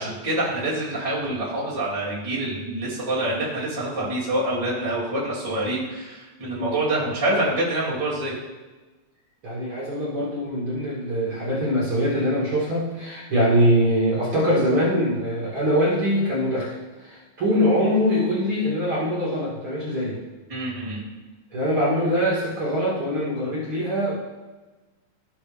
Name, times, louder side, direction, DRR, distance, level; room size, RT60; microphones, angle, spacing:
voice 1, 0.0-8.3 13.3-13.4 20.5-21.0, right 1 dB, 10° right, -8 dB, 2.3 m, -26 dB
voice 2, 9.4-20.2 21.5-24.1, equal, 45° right, -6 dB, 2.5 m, -23 dB
15.5 x 5.2 x 3.4 m, 1.2 s
omnidirectional pair, 3.5 m